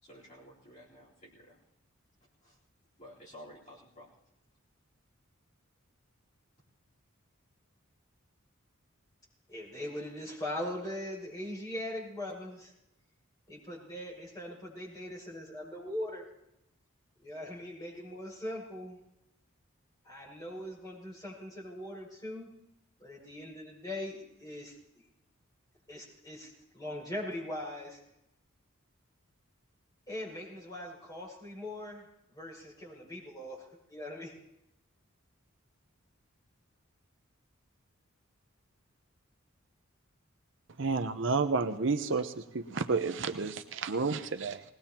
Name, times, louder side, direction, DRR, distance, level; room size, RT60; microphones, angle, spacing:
voice 1, 0.0-1.6 2.4-2.6 3.0-4.1, equal, 35° left, -7 dB, 3.9 m, -52 dB
voice 2, 9.5-12.7 13.5-16.3 17.2-19.0 20.0-22.5 23.0-24.7 25.9-28.0 30.1-32.0 32.3-33.6 33.9-34.3, left 1 dB, 20° left, -6 dB, 6.1 m, -40 dB
voice 3, 40.8-44.6, right 4 dB, 60° right, 8 dB, 0.7 m, -31 dB
21.0 x 19.0 x 3.0 m, 0.84 s
head